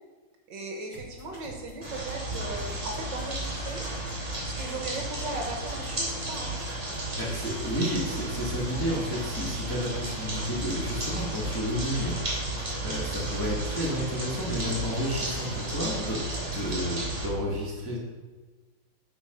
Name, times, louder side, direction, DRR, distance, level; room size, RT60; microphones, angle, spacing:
voice 1, 0.5-3.8 4.4-6.5, right 2 dB, 60° right, 2 dB, 1.7 m, -37 dB
sound 1, 0.9-16.9, right 2 dB, 80° left, 2.8 m, -46 dB
sound 2, 1.8-17.3, right 1 dB, 30° right, 2.8 m, -33 dB
voice 2, 7.2-16.2 16.5-18.0, equal, 15° left, -4 dB, 1.1 m, -31 dB
9.0 x 4.5 x 5.7 m, 1.3 s
omnidirectional pair, 2.3 m